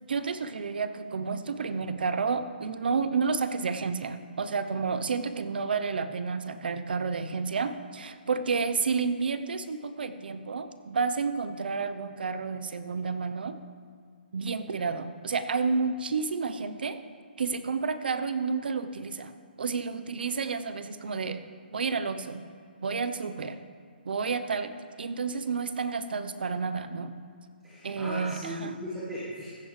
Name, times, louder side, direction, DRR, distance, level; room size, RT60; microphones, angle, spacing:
voice 1, 0.0-13.6 14.3-17.0 17.4-19.3 19.6-21.4 21.7-22.4 22.8-23.6 24.1-27.1 27.8-28.7, right 5 dB, 60° right, 11 dB, 0.8 m, -30 dB
voice 2, 27.6-29.5, equal, 5° right, -9 dB, 1.5 m, -37 dB
15.0 x 13.0 x 3.3 m, 2.2 s
hypercardioid pair, 175°, 6 cm